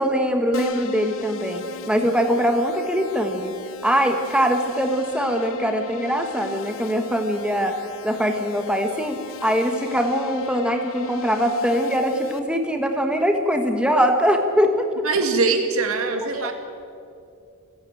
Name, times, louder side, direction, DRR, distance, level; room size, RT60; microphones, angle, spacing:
voice 1, 0.0-3.5 3.8-7.8 8.0-9.2 9.4-14.9, equal, 5° right, 4 dB, 1.3 m, -22 dB
Keyboard (musical), 0.5-12.4, left 3 dB, 75° left, 1.1 m, -37 dB
voice 2, 15.0-16.5, right 4 dB, 80° right, 6 dB, 2.3 m, -22 dB
29.0 x 11.0 x 9.0 m, 2.4 s
head